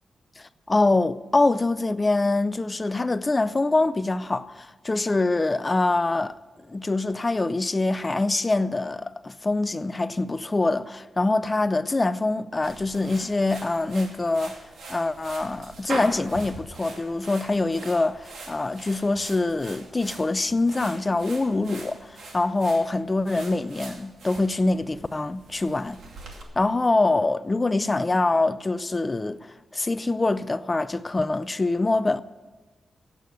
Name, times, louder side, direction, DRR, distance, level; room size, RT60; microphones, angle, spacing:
voice 1, 0.4-6.4 6.7-14.6 14.9-26.0 26.6-32.2, left 2 dB, 20° left, 0.5 m, -24 dB
sound 1, 12.6-26.4, right 3 dB, 85° right, 2.5 m, -42 dB
16.0 x 8.4 x 7.9 m
wide cardioid pair, 165°, 0 cm